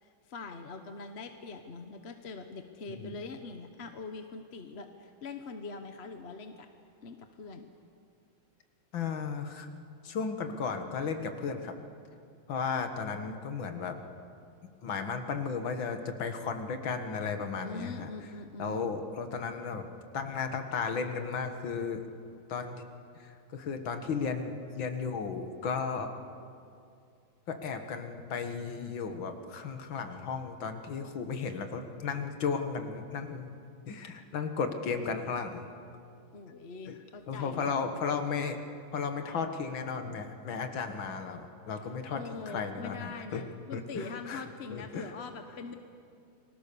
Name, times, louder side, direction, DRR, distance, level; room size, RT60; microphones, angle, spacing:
voice 1, 0.0-6.7 7.0-7.7 17.6-19.0 36.3-37.7 42.1-45.8, left 4 dB, 40° left, 6 dB, 1.0 m, -43 dB
voice 2, 8.9-9.7 10.0-11.8 12.5-14.0 14.8-18.1 18.6-19.9 20.1-22.0 22.5-22.8 23.2-26.1 27.5-33.5 33.9-35.7 36.9-37.0 37.3-38.6 38.9-43.4 43.7-44.4 44.7-45.1, left 5 dB, 75° left, 7 dB, 2.3 m, -34 dB
29.5 x 21.0 x 6.9 m, 2.5 s
omnidirectional pair, 2.2 m